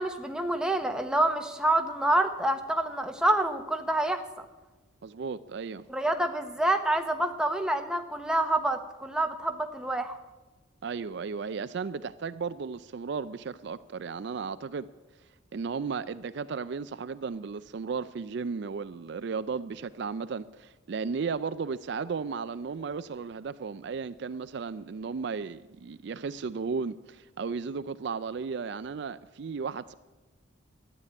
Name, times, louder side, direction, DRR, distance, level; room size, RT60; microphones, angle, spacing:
voice 1, 0.0-4.2 5.9-10.2, right 1 dB, 5° right, 0.9 m, -27 dB
voice 2, 5.0-5.8 10.8-14.9 15.5-29.9, right 5 dB, 55° right, 0.4 m, -35 dB
13.0 x 9.0 x 9.6 m
head